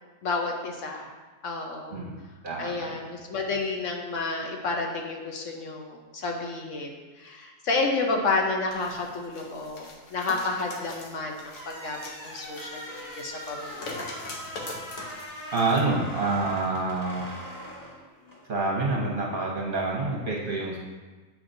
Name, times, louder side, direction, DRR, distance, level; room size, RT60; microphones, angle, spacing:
voice 1, 0.2-1.1 1.4-2.0 2.6-14.0, left 3 dB, 65° left, 1 dB, 1.0 m, -30 dB
voice 2, 1.9-3.0 15.5-17.4 18.5-20.8, right 3 dB, 45° right, -2 dB, 0.8 m, -27 dB
sound 1, 8.7-15.8 16.3-16.4, left 2 dB, 85° left, 1.3 m, -42 dB
sound 2, 11.5-18.4, equal, 15° left, 1.4 m, -41 dB
8.4 x 4.5 x 2.6 m, 1.3 s
omnidirectional pair, 1.5 m